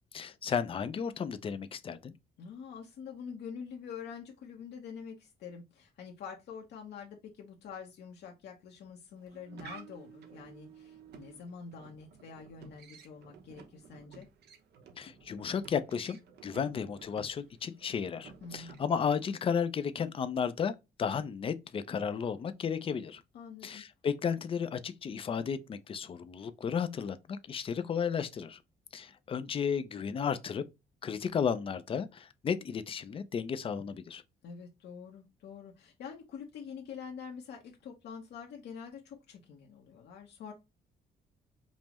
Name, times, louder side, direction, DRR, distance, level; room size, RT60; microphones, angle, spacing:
voice 1, 0.1-2.1 15.0-23.2 23.6-28.6 28.9-30.6 31.0-34.2, left 7 dB, 35° left, 0.4 m, -33 dB
voice 2, 2.4-14.3 18.4-18.7 23.3-23.8 34.4-40.5, left 6 dB, 80° left, 0.8 m, -46 dB
sound 1, 9.2-19.2, right 5 dB, 75° right, 0.8 m, -54 dB
5.3 x 2.0 x 2.9 m
cardioid pair, 145°, 17 cm